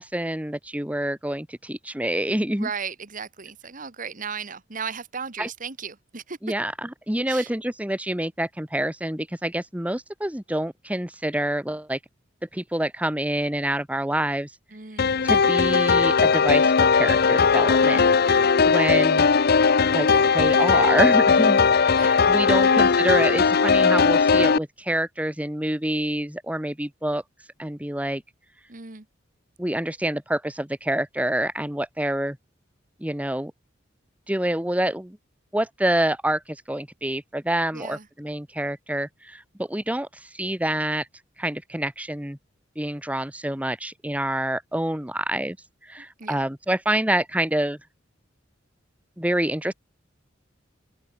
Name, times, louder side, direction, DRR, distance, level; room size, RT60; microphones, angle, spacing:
voice 1, 0.0-2.7 5.4-5.5 6.4-12.0 12.5-14.5 15.2-19.3 19.9-20.1 20.3-21.6 22.0-27.2 27.6-28.2 29.6-32.4 33.0-33.5 34.3-35.2 35.5-41.1 41.4-42.4 42.8-45.6 45.8-47.8 49.2-49.7, right 1 dB, 5° right, 1.4 m, -27 dB
voice 2, 2.6-6.4 7.3-7.5 14.7-15.1 18.9-19.2 21.9-22.1 22.5-22.9 28.7-29.0 37.7-38.1 46.2-46.4, right 6 dB, 45° right, 1.7 m, -36 dB
sound 1, 15.0-24.6, left 5 dB, 55° left, 0.7 m, -18 dB
open air
head